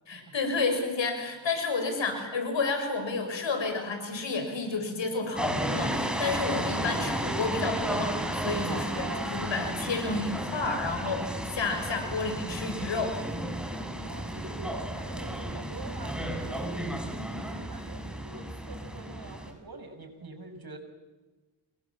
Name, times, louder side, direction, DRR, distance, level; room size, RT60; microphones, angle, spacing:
voice 1, 0.1-13.2, left 3 dB, 75° left, 6 dB, 6.6 m, -31 dB
sound 1, 5.4-19.5, right 1 dB, ahead, 6.5 m, -33 dB
voice 2, 8.7-9.3 14.0-20.8, right 3 dB, 50° right, 6 dB, 6.6 m, -44 dB
29.5 x 22.5 x 7.4 m, 1.2 s
cardioid pair, 50°, 45 cm